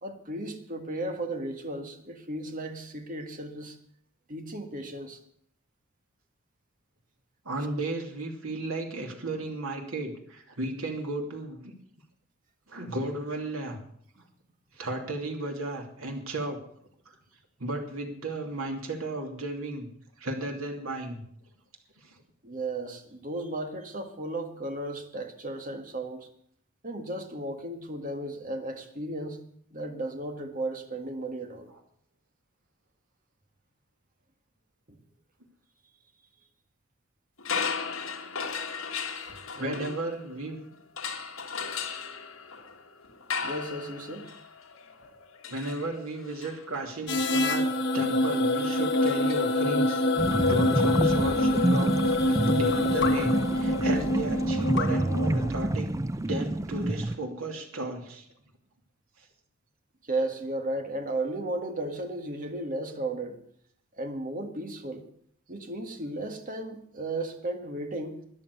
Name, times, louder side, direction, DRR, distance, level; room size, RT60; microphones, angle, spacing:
voice 1, 0.0-3.8 4.3-5.2 22.4-26.3 26.8-31.7 39.1-39.9 43.4-44.4 60.1-63.4 63.9-65.1 65.5-68.2, right 2 dB, 40° right, 5 dB, 1.8 m, -35 dB
voice 2, 7.4-11.7 12.7-13.8 14.7-16.6 17.6-19.9 20.2-21.2 22.0-22.1 39.6-40.7 45.5-50.0 50.4-52.0 52.2-55.9 56.3-58.3, right 2 dB, 90° right, 2 dB, 2.7 m, -34 dB
sound 1, 37.4-40.5 41.0-50.0, left 6 dB, 75° left, 1.7 m, -37 dB
sound 2, 47.1-55.5, left 1 dB, 55° left, 1.4 m, -26 dB
sound 3, 50.2-57.2, right 1 dB, 15° right, 0.4 m, -28 dB
13.0 x 10.5 x 6.7 m, 0.65 s
head